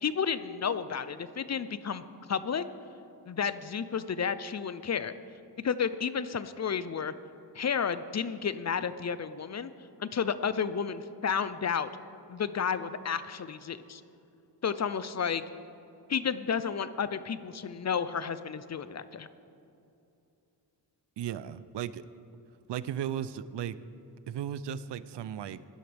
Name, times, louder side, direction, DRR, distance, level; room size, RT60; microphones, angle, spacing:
voice 1, 0.0-2.0 2.3-2.6 3.3-5.1 5.6-7.1 7.5-9.7 10.0-11.9 12.3-14.0 14.6-15.4 16.1-19.3, left 7 dB, 40° left, 14 dB, 0.5 m, -31 dB
voice 2, 21.2-22.0 22.7-23.8 24.3-25.6, right 9 dB, 75° right, 16 dB, 0.5 m, -35 dB
17.0 x 11.0 x 3.4 m, 2.7 s
cardioid pair, 85°, 43 cm